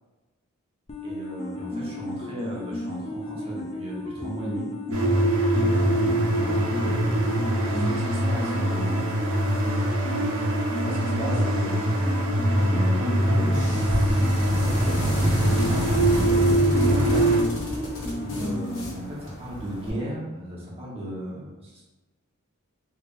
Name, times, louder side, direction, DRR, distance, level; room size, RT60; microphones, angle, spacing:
sound 1, 0.9-18.9, left 1 dB, 30° left, 0.4 m, -34 dB
voice 1, 1.0-4.7 5.5-7.3 7.6-9.2 10.7-13.8 14.4-17.4 18.1-21.8, equal, 30° right, -6 dB, 1.0 m, -35 dB
sound 2, 4.9-17.4, right 1 dB, 70° right, 0.5 m, -23 dB
sound 3, 13.4-19.9, equal, 60° left, 1.0 m, -32 dB
3.3 x 3.2 x 2.4 m, 1.1 s
head